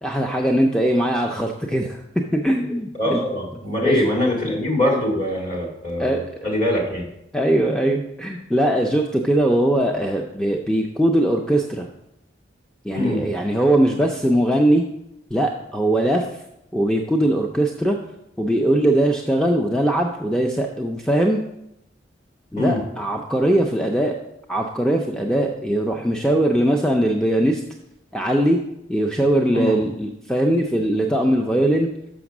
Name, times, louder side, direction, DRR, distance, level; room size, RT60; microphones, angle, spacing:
voice 1, 0.0-3.2 3.8-4.1 6.0-6.5 7.3-11.9 12.8-14.8 15.3-16.2 16.7-18.0 18.4-21.4 22.5-24.1 24.5-27.6 28.1-28.6 28.9-31.9, right 1 dB, 5° left, 2 dB, 0.4 m, -20 dB
voice 2, 3.0-7.1 12.9-13.2 22.5-22.8 29.5-29.8, left 1 dB, 40° left, -1 dB, 2.0 m, -23 dB
6.2 x 5.9 x 5.9 m, 0.84 s
head